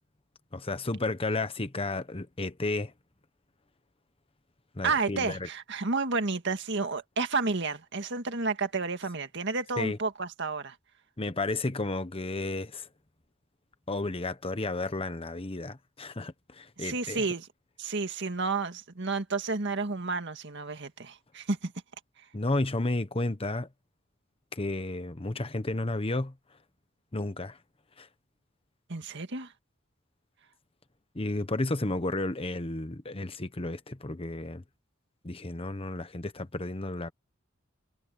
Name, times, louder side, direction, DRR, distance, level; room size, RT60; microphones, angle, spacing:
voice 1, 0.5-2.9 4.7-5.5 9.8-10.0 11.2-12.9 13.9-17.3 22.3-23.7 24.5-26.3 27.1-27.6 28.0-28.1 31.1-34.6 35.2-37.1, left 2 dB, 30° left, 1.1 m, -32 dB
voice 2, 4.8-10.8 16.8-17.5 17.8-21.7 28.9-29.5, right 4 dB, 65° right, 1.9 m, -31 dB
head